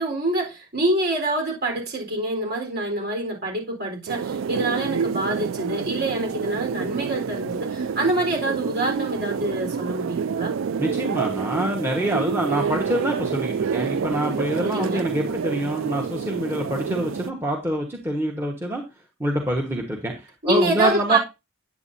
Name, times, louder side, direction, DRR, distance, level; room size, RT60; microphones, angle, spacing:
voice 1, 0.0-10.5 14.6-15.1 20.4-21.2, right 2 dB, 50° right, 4.2 m, -26 dB
sound 1, 4.1-17.3, right 6 dB, 80° right, 0.4 m, -28 dB
voice 2, 10.8-18.8 19.2-21.2, right 1 dB, 10° right, 1.3 m, -26 dB
9.5 x 8.3 x 2.7 m
head